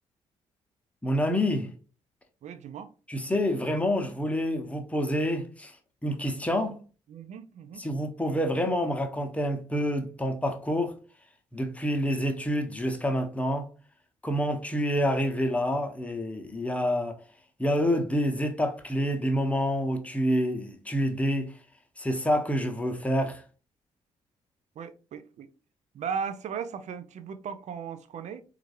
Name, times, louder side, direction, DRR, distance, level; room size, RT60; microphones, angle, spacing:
voice 1, 1.0-1.7 3.1-5.7 6.0-6.8 7.8-10.9 11.5-13.7 14.2-17.2 17.6-21.5 22.0-23.4, equal, 10° left, 0.8 m, -27 dB
voice 2, 2.4-2.9 7.1-7.8 24.8-25.5 25.9-28.4, right 7 dB, 50° right, 0.5 m, -37 dB
4.2 x 2.4 x 3.1 m
figure-of-eight pair, 40°, 16 cm